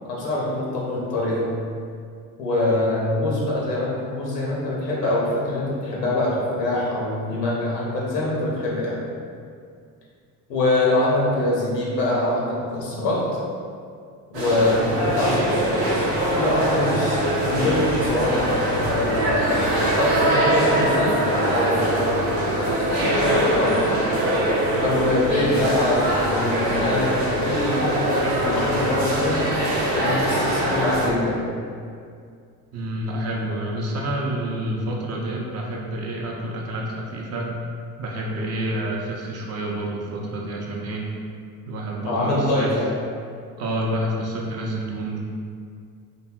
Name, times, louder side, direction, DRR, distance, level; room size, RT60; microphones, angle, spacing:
voice 1, 0.0-1.5 2.4-9.0 10.5-13.2 14.3-15.6 16.3-19.2 19.9-22.1 22.4-24.0 24.8-29.5 29.9-31.4 42.1-42.9, left 1 dB, 85° left, -5 dB, 0.8 m, -24 dB
sound 1, 14.3-31.1, right 1 dB, 90° right, 0.6 m, -22 dB
voice 2, 32.7-37.5 38.0-41.0 41.7-42.7 43.6-45.2, right 1 dB, 35° right, -2 dB, 0.4 m, -28 dB
2.7 x 2.6 x 2.2 m, 2.2 s
hypercardioid pair, 60°, 47 cm